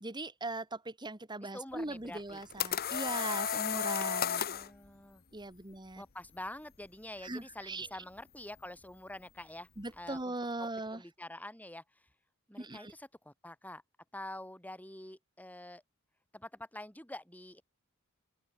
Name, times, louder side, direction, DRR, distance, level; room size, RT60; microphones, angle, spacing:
voice 1, 0.0-4.5 5.3-6.0 7.2-7.9 9.8-11.0 12.6-12.9, right 2 dB, 20° right, 2.3 m, -40 dB
voice 2, 1.4-2.4 4.4-5.2 6.0-10.3 10.9-12.0 12.5-13.8 14.1-15.8 16.3-17.6, left 1 dB, 5° left, 6.8 m, -47 dB
sound 1, 2.2-4.7, left 8 dB, 45° left, 1.1 m, -33 dB
head